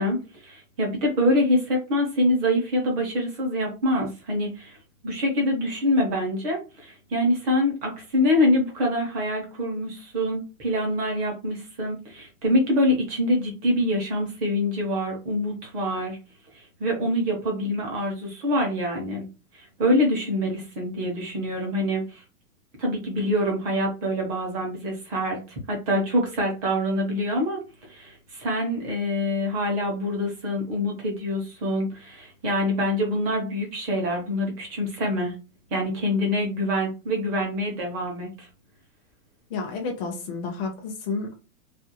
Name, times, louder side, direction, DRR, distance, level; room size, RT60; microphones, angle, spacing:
voice 1, 0.0-4.8 5.0-16.2 16.5-19.2 19.8-22.2 22.8-25.4 25.7-35.4 35.7-38.5, left 1 dB, 25° right, 0 dB, 0.7 m, -25 dB
voice 2, 39.5-41.3, left 4 dB, 40° left, 1 dB, 0.6 m, -31 dB
2.5 x 2.2 x 2.8 m, 0.31 s
supercardioid pair, 170°, 45 cm